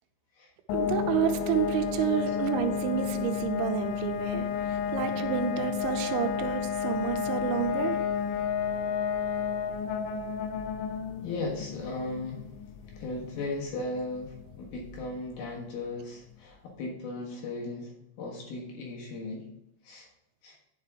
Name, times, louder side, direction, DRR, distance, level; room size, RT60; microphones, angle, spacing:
sound 1, 0.7-15.3, left 7 dB, 85° left, 3.0 m, -32 dB
voice 1, 0.7-8.0, right 10 dB, 85° right, 6 dB, 3.0 m, -30 dB
voice 2, 11.2-12.4 13.0-17.9 18.2-19.5 19.8-20.1 20.4-20.6, left 2 dB, 65° left, -1 dB, 2.9 m, -36 dB
9.6 x 5.7 x 3.6 m, 0.86 s
omnidirectional pair, 5.3 m